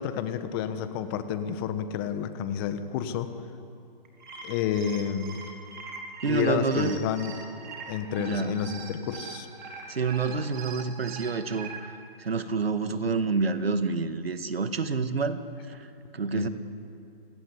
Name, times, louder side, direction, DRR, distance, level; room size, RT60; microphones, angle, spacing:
voice 1, 0.0-3.3 4.4-5.4 6.3-7.3 7.9-9.5 16.3-16.5, left 8 dB, 25° left, 10 dB, 1.3 m, -30 dB
sound 1, 4.0-11.8, right 5 dB, 50° right, 5.0 m, -42 dB
voice 2, 6.2-7.0 8.2-8.6 9.9-15.4 15.7-15.9 16.1-16.5, right 4 dB, 80° right, 10 dB, 1.9 m, -28 dB
28.0 x 18.0 x 10.0 m, 2.5 s
hypercardioid pair, 145°, 29 cm